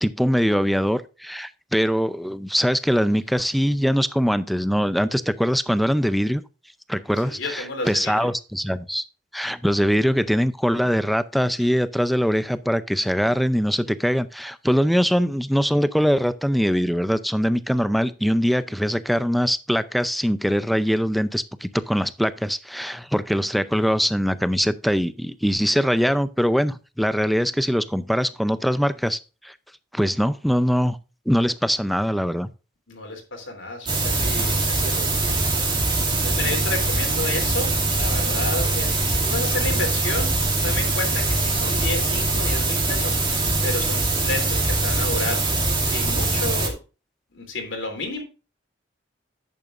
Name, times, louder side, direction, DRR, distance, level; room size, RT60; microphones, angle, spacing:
voice 1, 0.0-6.4 6.9-9.0 9.3-29.5 29.9-31.0 31.3-32.5, equal, ahead, 0.5 m, -22 dB
voice 2, 7.2-8.3 32.9-40.3 40.6-45.4 45.8-46.8 47.3-48.2, left 2 dB, 80° left, 3.1 m, -31 dB
sound 1, 33.9-46.7, right 2 dB, 25° right, 2.3 m, -22 dB
10.5 x 8.4 x 2.5 m
head